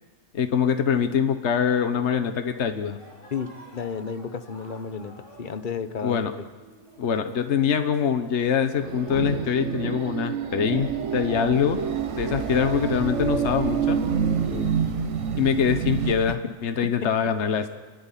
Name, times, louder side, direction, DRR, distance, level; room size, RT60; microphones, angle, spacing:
voice 1, 0.3-3.0 6.0-6.3 7.0-11.8 12.2-14.0 15.4-17.7, left 7 dB, 60° left, 8 dB, 1.3 m, -24 dB
sound 1, 2.6-9.4, equal, 20° left, 5.3 m, -51 dB
voice 2, 3.3-6.5 12.3-12.7 14.5-14.7, left 6 dB, 40° left, 11 dB, 1.2 m, -33 dB
sound 2, 8.8-16.1, right 7 dB, 65° right, 1.4 m, -28 dB
sound 3, 10.8-16.4, right 5 dB, 35° right, 0.6 m, -37 dB
29.5 x 12.5 x 10.0 m, 1.4 s
omnidirectional pair, 1.3 m